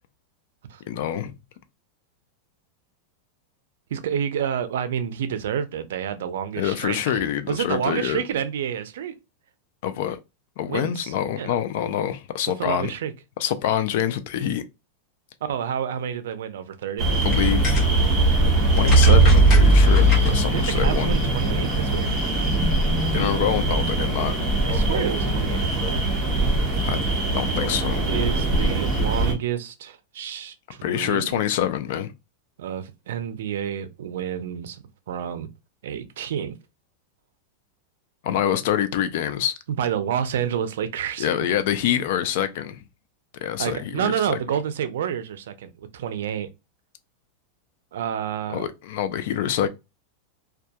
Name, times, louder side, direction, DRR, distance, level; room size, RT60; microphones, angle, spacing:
voice 1, 0.9-1.3 6.6-8.2 9.8-10.2 10.6-12.9 13.4-14.6 17.2-17.8 18.8-21.1 23.1-24.3 26.8-27.0 27.3-28.1 30.8-32.1 38.2-39.5 41.2-42.8 43.4-44.4 48.5-49.7, left 10 dB, 55° left, 0.3 m, -26 dB
voice 2, 3.9-9.1 10.7-11.5 12.6-13.1 15.4-17.1 20.5-22.2 24.7-26.1 28.1-31.4 32.6-35.5 35.8-36.6 39.8-41.3 43.6-46.5 47.9-48.7, right 9 dB, 80° right, 0.4 m, -29 dB
sound 1, 17.0-29.3, right 2 dB, 15° right, 0.7 m, -20 dB
sound 2, 17.1-22.5, left 3 dB, 25° left, 0.9 m, -35 dB
2.2 x 2.2 x 2.7 m
supercardioid pair, 165°, 0 cm